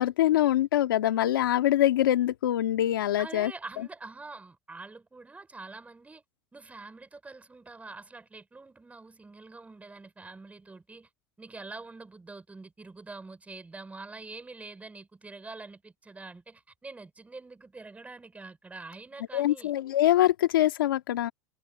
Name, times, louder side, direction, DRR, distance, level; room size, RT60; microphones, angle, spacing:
voice 1, 0.0-3.5 19.3-21.3, left 13 dB, 90° left, 1.9 m, -24 dB
voice 2, 3.2-6.2 6.5-11.1 11.4-19.7, right 3 dB, 15° right, 5.3 m, -45 dB
supercardioid pair, 105°, 11 cm